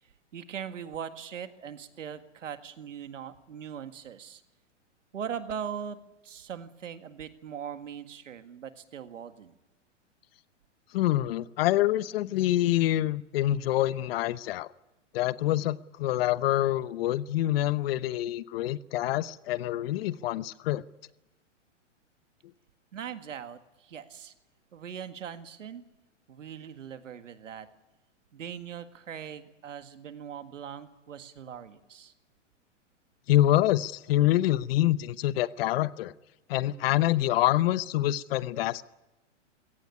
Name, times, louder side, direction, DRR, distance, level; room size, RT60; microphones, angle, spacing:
voice 1, 0.3-4.4 5.1-6.0 6.2-9.5 22.9-24.3 24.7-25.8 26.3-27.7 28.3-32.1, right 8 dB, 85° right, 9 dB, 1.9 m, -40 dB
voice 2, 10.9-14.7 15.1-20.8 33.3-36.1 36.5-38.8, left 14 dB, 50° left, 17 dB, 0.9 m, -26 dB
21.5 x 17.5 x 9.7 m, 0.99 s
hypercardioid pair, 130°, 37 cm